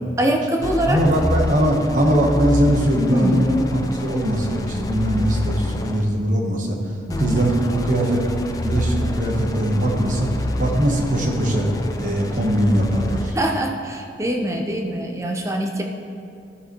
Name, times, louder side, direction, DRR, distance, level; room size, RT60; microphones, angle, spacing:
voice 1, 0.2-1.0 3.1-3.4 7.1-7.4 13.3-15.8, right 1 dB, 15° right, 2 dB, 0.7 m, -23 dB
sound 1, 0.6-6.2 7.1-13.5, left 1 dB, 20° left, 0.4 m, -27 dB
voice 2, 0.9-6.9 7.2-8.2 8.6-10.3 10.6-11.7 12.0-13.4, equal, 45° right, 1 dB, 1.1 m, -20 dB
14.0 x 6.8 x 3.1 m, 2.6 s
head